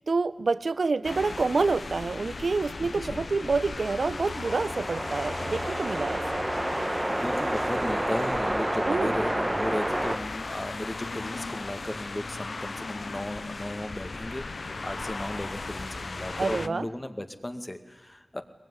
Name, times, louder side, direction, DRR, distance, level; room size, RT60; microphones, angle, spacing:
voice 1, 0.1-6.5 8.9-9.2 16.4-16.9, right 4 dB, 80° right, 17 dB, 0.8 m, -27 dB
sound 1, 1.0-16.7, left 3 dB, 70° left, 0.8 m, -37 dB
voice 2, 2.8-3.2 7.0-18.4, left 1 dB, 25° left, 7 dB, 2.0 m, -35 dB
sound 2, 4.4-10.2, right 1 dB, 20° right, 1.2 m, -29 dB
22.0 x 21.0 x 9.9 m, 1.3 s
wide cardioid pair, 55°, 0 cm